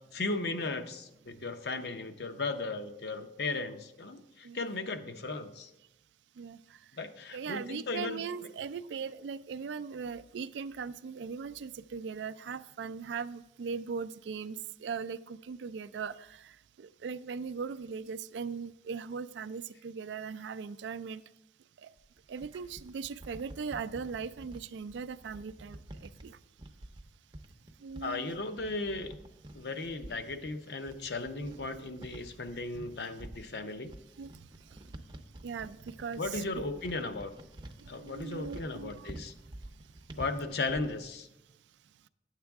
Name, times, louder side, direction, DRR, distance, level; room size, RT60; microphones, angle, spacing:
voice 1, 0.1-5.7 7.0-8.2 28.0-29.1 29.5-33.9 36.2-37.3 37.9-39.3 40.2-41.3, left 3 dB, 65° left, 8 dB, 0.7 m, -36 dB
voice 2, 7.3-16.5 16.8-21.2 21.8-21.9 22.3-26.4 27.8-28.3 34.2-34.3 35.4-36.4 37.8-39.1, right 5 dB, 85° right, 15 dB, 0.4 m, -39 dB
sound 1, 22.0-41.1, right 1 dB, 25° right, 0.6 m, -49 dB
9.6 x 7.3 x 3.5 m, 0.87 s
head